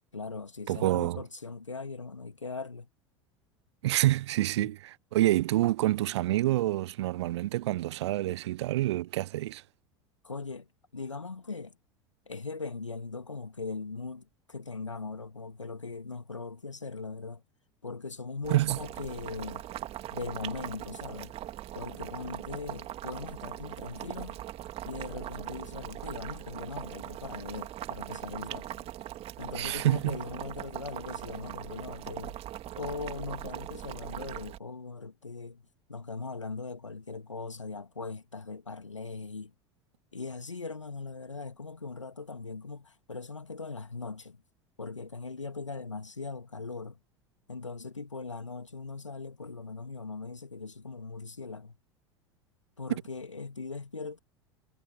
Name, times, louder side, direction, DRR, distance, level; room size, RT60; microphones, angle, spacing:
voice 1, 0.1-2.9 4.6-4.7 10.2-11.8 12.3-17.4 17.8-19.6 20.1-21.3 21.7-24.4 24.8-28.9 29.4-32.4 32.7-35.6 35.9-39.5 40.1-44.4 44.8-47.0 47.5-51.8 52.8-54.2, left 4 dB, 85° left, 2.3 m, -40 dB
voice 2, 0.7-1.2 3.8-9.6 18.5-18.8 29.6-30.2, right 15 dB, 65° right, 0.5 m, -27 dB
Boiling, 18.4-34.6, right 13 dB, 40° right, 2.3 m, -40 dB
figure-of-eight pair, 80°, 15 cm